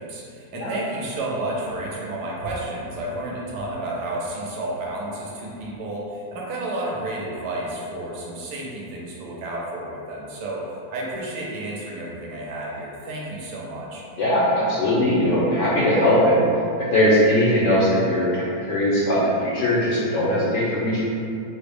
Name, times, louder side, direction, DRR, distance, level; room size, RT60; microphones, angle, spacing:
voice 1, 0.0-14.0, right 1 dB, 85° right, -3 dB, 1.2 m, -31 dB
voice 2, 14.2-16.4 16.8-21.0, left 1 dB, 70° left, -7 dB, 0.8 m, -20 dB
3.7 x 2.0 x 3.3 m, 2.5 s
omnidirectional pair, 1.7 m